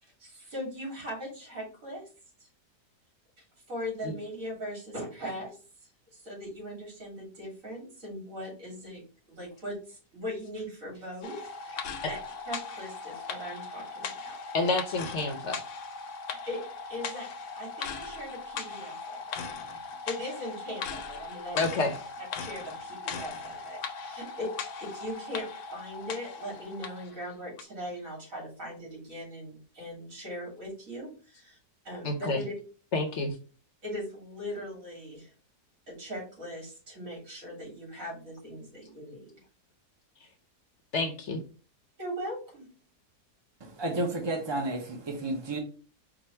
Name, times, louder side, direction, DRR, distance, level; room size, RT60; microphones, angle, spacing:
voice 1, 0.0-2.0 2.4-2.5 3.4-9.0 9.3-12.2 12.5-14.4 16.3-16.6 16.9-17.3 17.6-19.4 20.1-21.6 22.4-24.5 24.8-31.6 31.8-32.5 33.8-35.3 35.9-39.4 42.0-42.7, equal, 60° right, -2 dB, 2.9 m, -40 dB
sound 1, 11.2-27.1 27.6-27.7, left 5 dB, 80° left, 1.1 m, -39 dB
voice 2, 14.5-15.6 21.6-21.9 32.0-32.4 32.9-33.3 40.9-41.4, left 3 dB, 60° left, 5 dB, 0.8 m, -28 dB
voice 3, 43.6-45.6, right 2 dB, 30° right, 1 dB, 0.5 m, -31 dB
4.8 x 2.3 x 4.3 m, 0.38 s
omnidirectional pair, 1.7 m